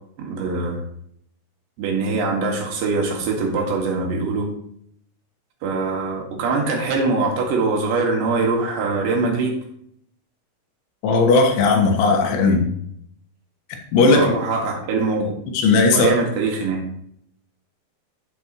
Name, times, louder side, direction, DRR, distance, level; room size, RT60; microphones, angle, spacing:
voice 1, 0.2-0.8 1.8-4.5 5.6-9.5 14.1-15.3 15.9-16.8, right 3 dB, 70° right, 0 dB, 4.0 m, -23 dB
voice 2, 11.0-12.7 13.9-14.3 15.5-16.1, left 3 dB, 80° left, 2 dB, 3.9 m, -16 dB
14.0 x 6.8 x 3.1 m, 0.69 s
omnidirectional pair, 5.3 m